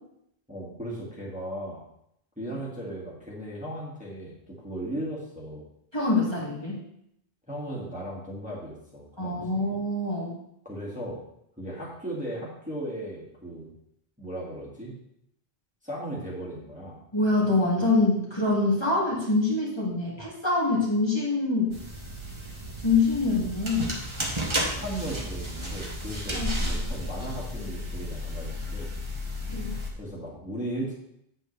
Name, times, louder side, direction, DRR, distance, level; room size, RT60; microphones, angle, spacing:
voice 1, 0.5-1.8 2.4-5.6 7.5-9.7 10.6-11.2 11.6-13.7 14.2-14.9 15.8-17.0 24.6-28.9 30.0-30.9, right 1 dB, 5° right, -7 dB, 2.0 m, -36 dB
voice 2, 5.9-6.7 9.2-10.3 17.1-21.8 22.8-23.9 26.3-26.5 29.5-29.8, left 3 dB, 25° left, -6 dB, 2.1 m, -25 dB
sound 1, 21.7-29.9, equal, 30° right, 1.4 m, -33 dB
8.0 x 7.9 x 3.3 m, 0.77 s
omnidirectional pair, 1.1 m